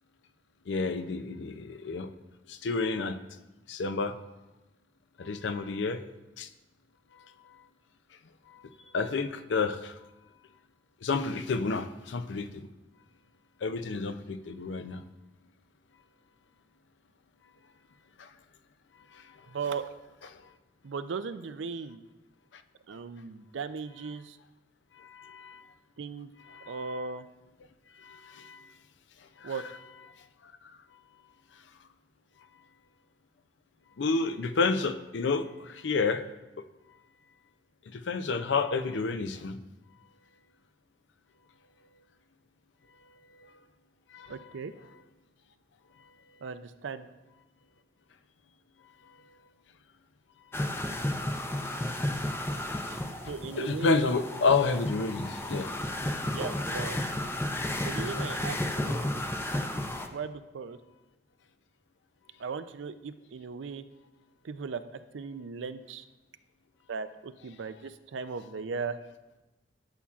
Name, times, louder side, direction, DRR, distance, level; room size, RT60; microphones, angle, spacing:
voice 1, 0.7-2.1 2.5-3.2 3.7-4.2 5.2-6.0 6.4-6.5 7.1-7.6 8.5-9.9 11.0-12.7 13.6-15.0 18.2-18.3 19.1-19.4 20.3-20.4 25.0-25.6 26.5-27.0 28.0-28.7 29.4-29.5 30.4-30.5 34.0-36.2 36.6-36.7 37.9-39.6 43.3-43.5 44.1-44.4 52.9-53.0 53.2-55.9, left 4 dB, 70° left, 11 dB, 0.5 m, -30 dB
voice 2, 19.5-19.9 20.8-22.0 22.9-24.4 26.0-26.3 26.7-27.3 29.4-29.6 44.3-44.7 46.4-47.1 53.3-54.1 56.3-57.0 57.8-59.1 60.1-60.8 62.4-63.8 64.4-64.8 65.1-66.0 66.9-69.0, right 5 dB, 90° right, 11 dB, 0.5 m, -37 dB
sound 1, 50.5-60.1, left 1 dB, 15° left, 0.5 m, -33 dB
12.5 x 7.1 x 2.4 m, 1.0 s
head